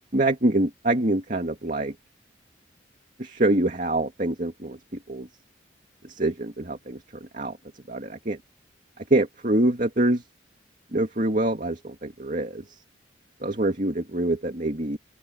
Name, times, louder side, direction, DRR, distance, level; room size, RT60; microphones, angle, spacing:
voice 1, 0.1-1.9 3.2-4.8 5.1-5.3 6.1-7.0 7.3-7.6 7.9-8.4 9.1-10.2 10.9-12.6 13.4-15.0, right 1 dB, 45° right, 2.4 m, -25 dB
open air
head